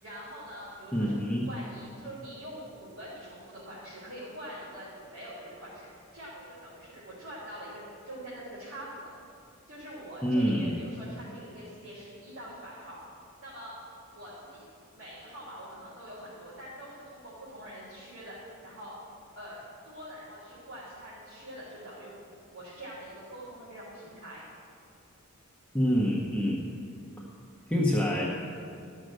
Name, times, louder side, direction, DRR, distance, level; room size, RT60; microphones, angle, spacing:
voice 1, 0.0-9.1 9.7-13.0 13.4-13.8 14.1-14.7 14.9-19.0 19.3-22.2 22.5-24.4, equal, 70° right, -9 dB, 3.4 m, -44 dB
voice 2, 0.9-1.5 10.2-10.8 25.7-26.7 27.2-27.3 27.7-28.3, equal, 5° left, -4 dB, 0.8 m, -26 dB
13.0 x 6.4 x 7.6 m, 2.5 s
head